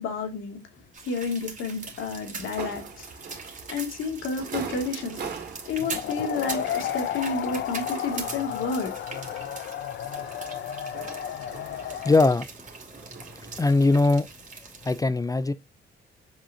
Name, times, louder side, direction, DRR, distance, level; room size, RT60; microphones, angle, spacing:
voice 1, 0.0-3.1 3.7-5.2 5.6-8.9, left 4 dB, 85° left, 2.5 m, -31 dB
sound 1, 0.9-15.0, right 4 dB, 40° right, 2.4 m, -42 dB
sound 2, 2.4-14.2, right 6 dB, 55° right, 2.4 m, -43 dB
sound 3, 5.8-12.3, left 10 dB, 65° left, 0.5 m, -33 dB
voice 2, 12.0-12.5 13.6-14.3 14.8-15.5, left 3 dB, 20° left, 0.5 m, -20 dB
7.1 x 6.0 x 2.8 m
cardioid pair, 90°, 20 cm